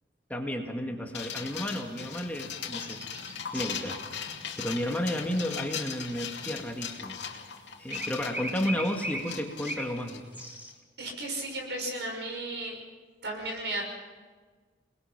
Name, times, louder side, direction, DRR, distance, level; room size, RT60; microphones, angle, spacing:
voice 1, 0.3-3.0 3.5-4.3 4.6-7.2 7.8-10.2, equal, 10° left, 2 dB, 2.0 m, -32 dB
sound 1, 1.1-10.7, left 7 dB, 80° left, 2.5 m, -39 dB
sound 2, 2.7-3.8 4.7-6.6 7.9-10.0 10.3-10.7, equal, 10° right, 2.6 m, -39 dB
voice 2, 11.0-12.8 13.2-13.8, right 2 dB, 75° right, 1 dB, 6.3 m, -34 dB
29.0 x 20.5 x 5.9 m, 1.5 s
head